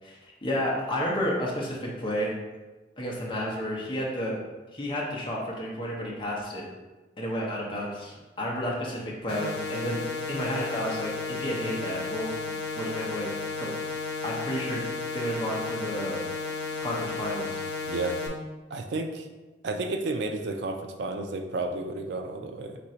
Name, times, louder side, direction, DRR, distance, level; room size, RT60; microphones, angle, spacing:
voice 1, 0.0-2.4 3.0-4.3 4.7-6.7 7.2-11.1 11.4-13.3 13.6-13.7 14.2-14.8 15.1-16.2 16.8-17.6, equal, 25° left, -3 dB, 0.7 m, -31 dB
sound 1, 9.3-18.3, left 4 dB, 60° left, 0.6 m, -33 dB
voice 2, 17.8-18.2 18.7-19.3 19.6-22.8, right 2 dB, 75° right, 5 dB, 0.4 m, -32 dB
3.7 x 2.6 x 4.3 m, 1.2 s
head